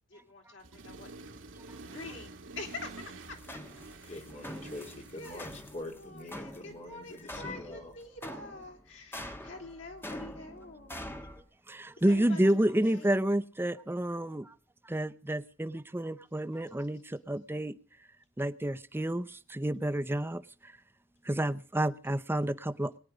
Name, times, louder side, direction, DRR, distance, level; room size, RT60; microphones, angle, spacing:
voice 1, 0.1-1.3 1.9-2.9 3.3-3.6 4.0-4.6 5.2-5.5 5.9-11.1 12.1-13.1, left 3 dB, 75° left, 3.6 m, -46 dB
Accelerating revving vroom, 0.6-5.8, right 3 dB, 80° right, 1.2 m, -48 dB
sound 1, 3.2-11.4, left 1 dB, 10° left, 1.6 m, -45 dB
voice 2, 4.1-7.9, left 1 dB, 40° left, 3.2 m, -44 dB
voice 3, 11.7-14.5 14.8-17.7 18.4-20.7 21.2-23.0, right 1 dB, 10° right, 0.6 m, -30 dB
22.0 x 9.3 x 5.0 m
head